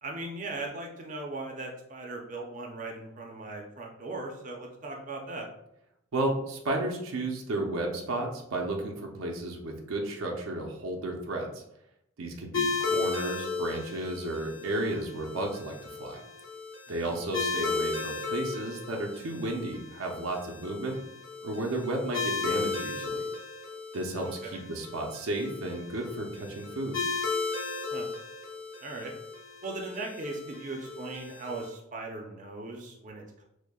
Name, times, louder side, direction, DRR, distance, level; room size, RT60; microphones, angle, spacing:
voice 1, 0.0-5.5 16.9-17.2 24.4-24.6 27.9-28.1 28.8-29.1 29.6-33.4, right 2 dB, 35° right, 1 dB, 0.5 m, -38 dB
voice 2, 6.1-11.6 12.2-16.2 16.9-21.0 21.4-23.3 23.9-27.0, right 1 dB, 85° right, 1 dB, 0.6 m, -33 dB
sound 1, 12.5-31.7, left 4 dB, 65° left, 0.8 m, -35 dB
6.1 x 2.1 x 2.3 m, 0.80 s
head